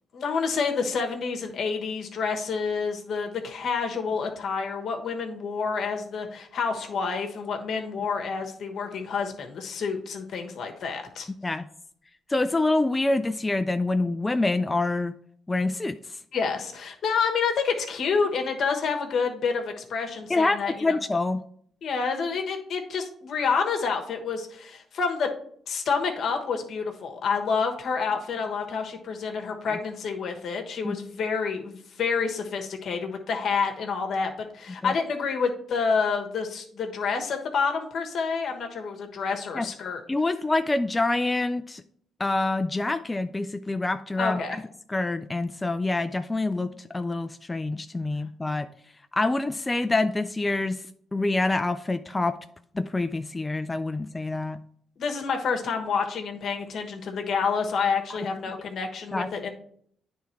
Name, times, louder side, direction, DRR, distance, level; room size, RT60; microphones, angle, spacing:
voice 1, 0.1-11.3 16.3-21.0 21.8-25.3 25.7-40.0 44.2-44.6 55.0-59.5, left 5 dB, 60° left, 4 dB, 1.3 m, -28 dB
voice 2, 12.3-15.1 15.5-16.2 20.3-21.4 29.7-29.8 30.8-31.0 34.8-34.9 39.5-39.7 40.1-41.8 42.2-44.4 44.9-48.7 49.1-50.8 51.1-52.4 52.7-54.6 59.1-59.3, left 2 dB, 20° left, 9 dB, 0.3 m, -26 dB
9.4 x 3.5 x 4.4 m, 0.64 s
cardioid pair, 90°, 0 cm